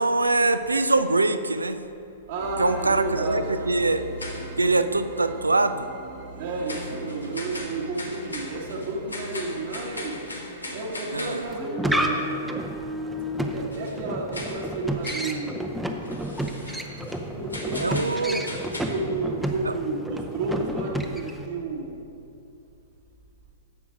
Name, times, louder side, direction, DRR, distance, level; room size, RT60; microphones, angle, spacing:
voice 1, 0.0-1.8 2.6-4.0 4.6-5.9 11.1-11.4 17.8-18.5 19.6-19.7, right 3 dB, 80° right, 11 dB, 0.5 m, -23 dB
voice 2, 2.3-3.8 6.4-10.2 10.7-12.6 13.5-15.8 17.3-18.5 18.8-22.0, right 2 dB, 55° right, -2 dB, 1.4 m, -32 dB
sound 1, 2.4-11.7, right 2 dB, 35° right, 1.2 m, -41 dB
sound 2, 3.9-4.6 5.1-5.3 6.7-11.5 13.7-14.0 14.3-14.6 15.0-15.3 16.0-17.2 17.5-18.8, left 1 dB, 85° left, 1.4 m, -38 dB
sound 3, 11.4-21.5, right 1 dB, 5° right, 0.7 m, -30 dB
10.0 x 7.1 x 4.9 m, 2.7 s
figure-of-eight pair, 105°, 0 cm